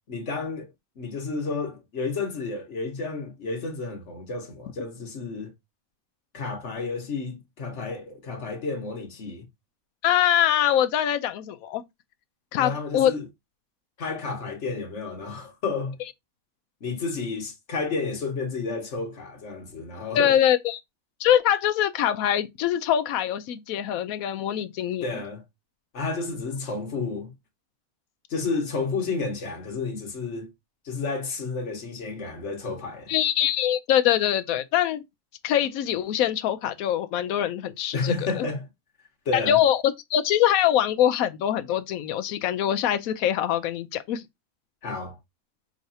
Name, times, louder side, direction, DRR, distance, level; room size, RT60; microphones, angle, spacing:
voice 1, 0.1-0.7 1.0-5.5 6.3-9.5 12.5-13.3 14.0-16.0 16.8-20.4 25.0-25.4 25.9-27.3 28.3-30.5 30.8-33.1 37.9-38.7 39.2-39.6 44.8-45.2, left 4 dB, 55° left, 1.4 m, -31 dB
voice 2, 10.0-11.8 12.5-13.1 20.1-20.8 21.2-25.0 33.1-35.0 35.4-38.5 39.3-44.2, left 10 dB, 80° left, 1.0 m, -23 dB
4.7 x 3.2 x 2.7 m
omnidirectional pair, 1.5 m